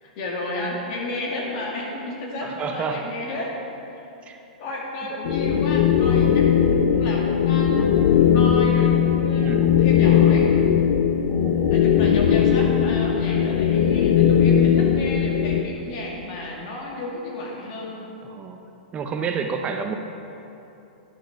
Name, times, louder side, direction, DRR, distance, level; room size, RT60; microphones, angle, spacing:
voice 1, 0.0-3.5 4.6-10.5 11.7-18.0, left 2 dB, 50° left, -3 dB, 2.4 m, -32 dB
voice 2, 2.4-3.1 4.2-4.4 9.4-9.7 11.3-11.9 18.2-18.6 18.9-19.9, right 6 dB, 25° right, 5 dB, 0.6 m, -30 dB
sound 1, 5.3-15.6, left 8 dB, 65° left, 0.5 m, -18 dB
11.0 x 6.2 x 4.8 m, 2.9 s
hypercardioid pair, 115°, 4 cm